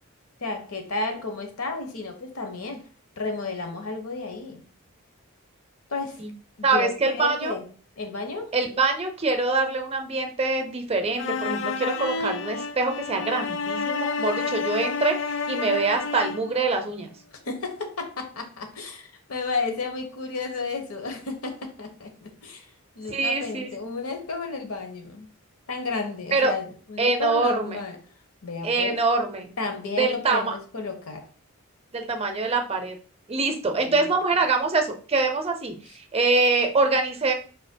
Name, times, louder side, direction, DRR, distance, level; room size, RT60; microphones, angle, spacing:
voice 1, 0.4-2.8 3.2-4.6 5.9-6.2 6.6-7.6 8.0-8.5 17.4-22.7 23.0-25.3 25.7-28.0 28.4-29.0 29.6-31.3 33.8-34.1, left 3 dB, 85° left, 5 dB, 1.1 m, -32 dB
voice 2, 6.6-7.6 8.5-17.1 23.1-23.7 26.3-26.5 27.0-27.8 28.6-29.5 29.9-30.5 31.9-33.0 33.3-37.3, right 3 dB, 25° right, 6 dB, 0.5 m, -24 dB
sound 1, 11.2-16.5, left 4 dB, 55° left, 0.4 m, -29 dB
5.3 x 4.2 x 2.2 m, 0.41 s
head